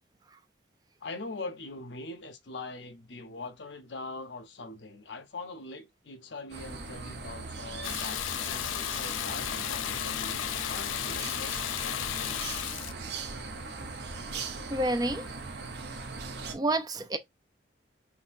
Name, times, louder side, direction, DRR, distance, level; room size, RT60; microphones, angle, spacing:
voice 1, 1.0-12.5, left 3 dB, 70° left, 0.8 m, -42 dB
sound 1, 6.5-16.5, right 3 dB, 60° right, 0.8 m, -39 dB
Water tap faucet / Bathtub (filling or washing), 7.8-12.9, left 12 dB, 85° left, 0.3 m, -34 dB
voice 2, 14.7-15.2 16.5-17.2, right 1 dB, 20° right, 0.4 m, -29 dB
5.9 x 2.7 x 2.6 m
head